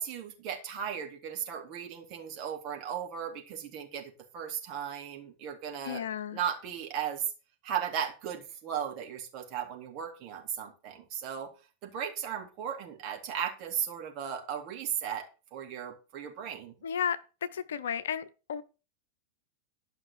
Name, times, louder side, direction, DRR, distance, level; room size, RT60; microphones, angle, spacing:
voice 1, 0.0-6.0 6.3-7.3 7.6-11.5 11.8-16.7, right 8 dB, 40° right, 3.7 m, -36 dB
voice 2, 5.8-6.4 16.8-17.2 17.5-18.6, left 8 dB, 60° left, 0.8 m, -33 dB
12.0 x 6.0 x 6.6 m
figure-of-eight pair, 90°, 0 cm